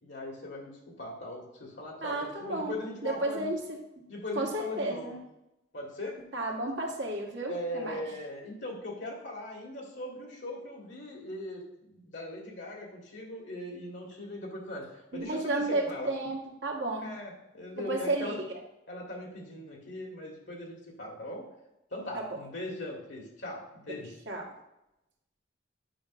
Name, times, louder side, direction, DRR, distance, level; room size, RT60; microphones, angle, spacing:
voice 1, 0.0-0.7 1.0-3.5 4.1-5.1 5.7-6.2 7.5-11.6 11.9-16.1 17.0-18.4 18.9-21.5 21.9-24.2, left 1 dB, 70° left, -2 dB, 1.9 m, -39 dB
voice 2, 2.0-2.7 3.0-3.8 4.3-5.2 6.3-8.0 15.1-17.1 17.8-18.4 22.1-22.3 24.3-24.4, right 2 dB, 75° right, -1 dB, 1.4 m, -32 dB
9.0 x 5.2 x 2.5 m, 0.89 s
head